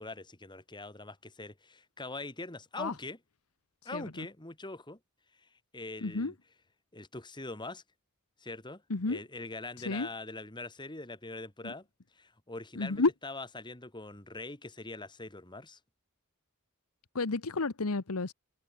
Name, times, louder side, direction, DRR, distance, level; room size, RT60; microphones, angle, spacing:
voice 1, 0.0-3.2 3.8-5.0 5.7-6.3 6.9-7.8 8.4-8.8 9.1-11.9 12.1-15.8, left 2 dB, 20° left, 2.8 m, -43 dB
voice 2, 3.9-4.3 6.0-6.3 8.9-9.2 9.8-10.1 11.6-11.7 12.8-13.1 17.1-18.3, left 3 dB, 85° left, 1.1 m, -31 dB
head